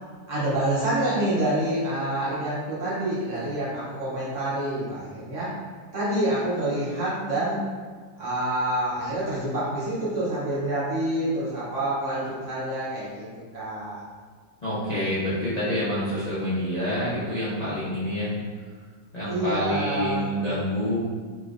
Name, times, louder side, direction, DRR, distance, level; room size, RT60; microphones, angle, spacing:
voice 1, 0.3-5.5 5.9-7.6 8.2-13.3 13.5-14.0 19.2-20.3, right 1 dB, 50° right, -9 dB, 1.2 m, -27 dB
voice 2, 14.6-18.3 19.1-21.0, equal, 60° left, -12 dB, 0.4 m, -27 dB
3.1 x 2.9 x 2.5 m, 1.5 s
omnidirectional pair, 1.8 m